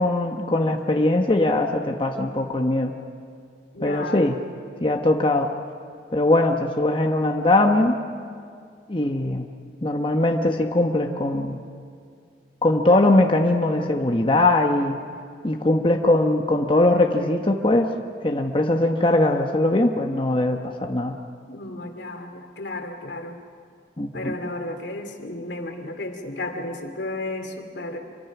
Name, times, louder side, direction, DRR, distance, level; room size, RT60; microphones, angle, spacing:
voice 1, 0.0-2.9 3.8-4.4 4.8-5.5 6.1-8.0 8.9-9.5 9.8-11.6 12.6-15.0 15.4-17.9 18.2-21.2 24.0-24.4, left 2 dB, 30° left, 3 dB, 1.1 m, -21 dB
voice 2, 3.7-4.2 21.5-23.4 24.1-28.0, left 2 dB, 75° left, 5 dB, 2.6 m, -33 dB
27.5 x 23.0 x 6.0 m, 2.2 s
head